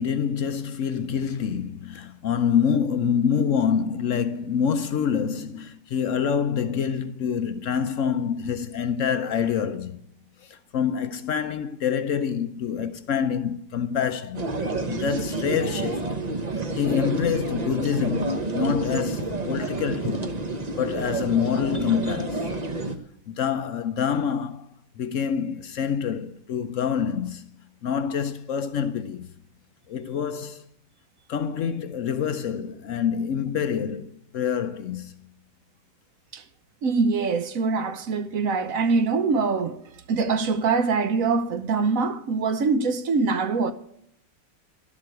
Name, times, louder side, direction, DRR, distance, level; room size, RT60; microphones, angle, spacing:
voice 1, 0.0-10.0 10.4-16.1 16.7-20.4 20.8-22.5 23.3-24.7 25.0-27.5 27.8-29.3 29.9-30.7 31.3-35.1, left 7 dB, 70° left, 0.7 m, -26 dB
sound 1, 14.3-23.0, right 2 dB, 40° right, 0.6 m, -29 dB
voice 2, 36.8-43.7, right 4 dB, 60° right, 1.0 m, -24 dB
12.0 x 7.5 x 7.8 m
omnidirectional pair, 1.9 m